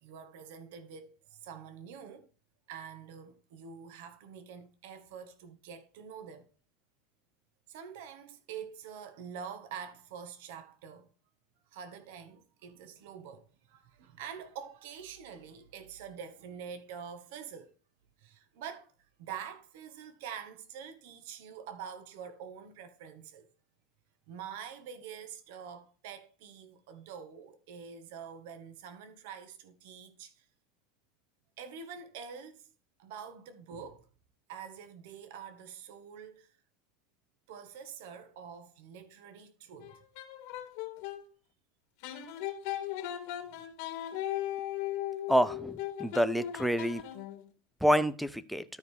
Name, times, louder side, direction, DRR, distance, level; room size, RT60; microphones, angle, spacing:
voice 1, 0.0-2.3 2.7-6.5 7.7-11.1 11.7-17.7 18.2-18.9 19.2-23.5 24.3-30.4 31.6-32.7 33.0-34.1 34.5-36.6 37.5-40.0 43.5-43.6, right 7 dB, 70° right, 1.4 m, -46 dB
sound 1, 39.8-41.2 42.0-47.5, left 12 dB, 60° left, 1.8 m, -38 dB
voice 2, 45.3-47.0 47.8-48.6, equal, ahead, 0.6 m, -27 dB
13.0 x 4.7 x 3.4 m
supercardioid pair, 150°, 0 cm